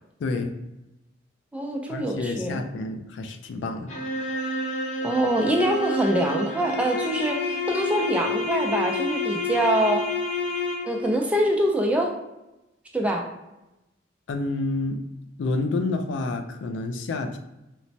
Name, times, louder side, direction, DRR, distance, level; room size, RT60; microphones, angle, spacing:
voice 1, 0.2-0.5 1.9-3.9 14.3-15.0 15.4-17.4, left 2 dB, 85° left, 6 dB, 0.3 m, -29 dB
voice 2, 1.5-2.6 5.0-10.1 10.8-12.1 12.9-13.2, right 1 dB, 5° right, 1 dB, 0.3 m, -24 dB
sound 1, 3.9-11.2, left 2 dB, 40° left, 0.6 m, -29 dB
3.0 x 2.1 x 2.6 m, 0.96 s
head